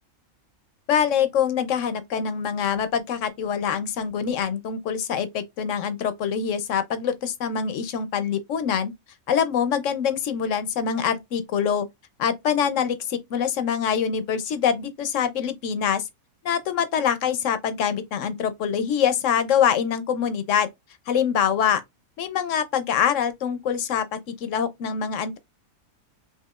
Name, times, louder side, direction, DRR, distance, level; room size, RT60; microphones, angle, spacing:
voice 1, 0.9-8.9 9.3-11.9 12.2-16.0 16.4-20.7 21.1-21.8 22.2-25.4, left 8 dB, 65° left, 0.9 m, -24 dB
5.7 x 2.7 x 2.3 m
omnidirectional pair, 1.6 m